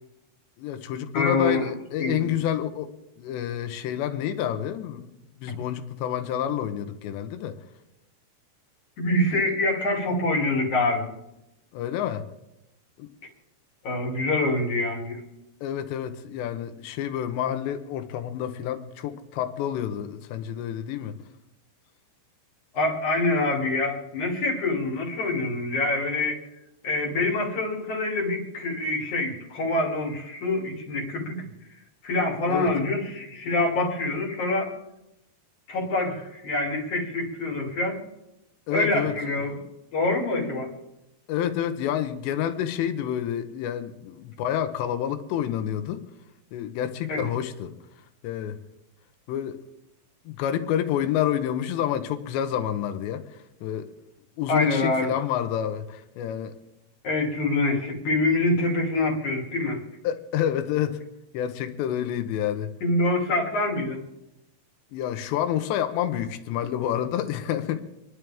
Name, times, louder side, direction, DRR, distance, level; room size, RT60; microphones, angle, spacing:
voice 1, 0.6-2.9 3.2-7.6 11.7-12.3 13.0-13.1 15.6-21.2 32.5-32.7 38.7-39.3 41.3-46.0 46.5-47.8 48.2-48.6 49.3-49.6 50.3-53.9 54.4-56.5 60.0-61.0 61.3-62.7 64.9-67.8, left 10 dB, 85° left, 9 dB, 3.2 m, -28 dB
voice 2, 1.1-1.7 2.0-2.3 9.0-11.1 13.8-15.2 22.7-26.4 26.8-31.5 32.0-34.7 35.7-38.0 38.7-39.6 39.9-40.7 47.1-47.2 54.5-55.1 57.0-59.8 62.8-64.0, left 2 dB, 50° left, -2 dB, 3.8 m, -25 dB
28.5 x 11.0 x 3.5 m, 0.91 s
omnidirectional pair, 5.0 m